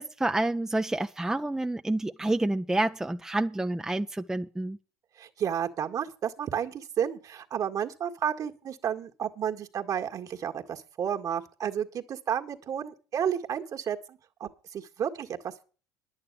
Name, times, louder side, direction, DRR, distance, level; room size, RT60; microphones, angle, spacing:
voice 1, 0.0-4.8, right 2 dB, 5° right, 0.7 m, -28 dB
voice 2, 5.2-15.6, right 8 dB, 45° right, 1.8 m, -32 dB
11.0 x 8.9 x 6.8 m
hypercardioid pair, 75°, 8 cm